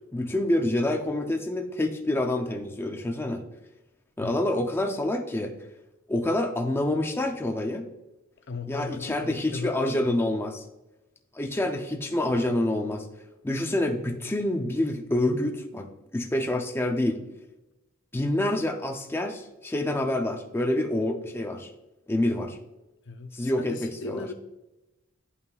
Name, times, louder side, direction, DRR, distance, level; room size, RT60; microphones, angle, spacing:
voice 1, 0.1-3.4 4.2-5.5 6.1-7.9 8.7-10.6 11.3-13.1 13.4-17.2 18.1-21.7 22.1-22.6 23.3-24.3, left 1 dB, 10° left, 0.5 m, -27 dB
voice 2, 8.5-10.1 23.1-24.3, left 3 dB, 55° left, 0.6 m, -37 dB
11.0 x 5.5 x 2.3 m
head